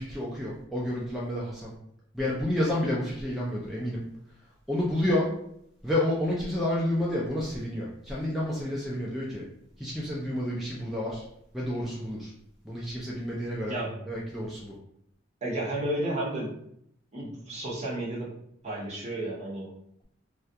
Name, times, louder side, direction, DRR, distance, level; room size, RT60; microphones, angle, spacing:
voice 1, 0.0-1.7 2.1-4.0 4.7-5.3 5.8-9.4 9.8-11.2 11.5-12.3 12.6-13.8 14.1-14.7, left 1 dB, ahead, -6 dB, 0.4 m, -30 dB
voice 2, 13.7-14.2 15.4-16.5 17.1-18.3 18.6-19.7, right 1 dB, 35° right, -5 dB, 0.8 m, -32 dB
2.3 x 2.2 x 2.6 m, 0.72 s
head